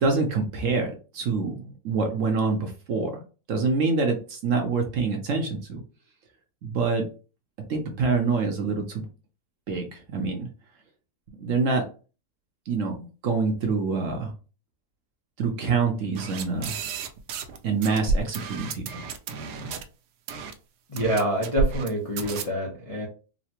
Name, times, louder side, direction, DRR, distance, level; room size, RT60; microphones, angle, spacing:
voice 1, 0.0-3.2 3.5-5.8 6.6-7.1 7.7-9.0 9.7-10.5 11.4-11.9 12.7-14.3 15.4-16.7 17.6-18.9, right 4 dB, 60° right, 3 dB, 0.9 m, -26 dB
sound 1, 16.1-17.6 17.8-19.8 20.3-20.5 21.0-21.9 22.2-22.4, right 4 dB, 80° right, 1.1 m, -30 dB
voice 2, 20.9-23.1, right 1 dB, 40° left, -4 dB, 0.5 m, -26 dB
4.0 x 2.0 x 2.8 m, 0.35 s
omnidirectional pair, 1.7 m